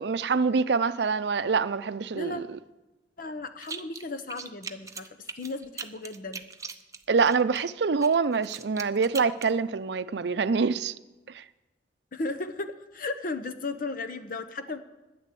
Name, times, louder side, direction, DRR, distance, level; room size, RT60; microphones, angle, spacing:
voice 1, 0.0-2.6 7.1-10.9 11.3-11.4, right 5 dB, 70° right, 0.5 m, -25 dB
voice 2, 2.1-2.4 3.2-6.5 12.1-14.8, left 3 dB, 55° left, 0.9 m, -35 dB
sound 1, 3.6-4.0 4.3-7.6 8.0-9.5, right 5 dB, 20° right, 0.7 m, -40 dB
12.0 x 10.5 x 8.4 m
head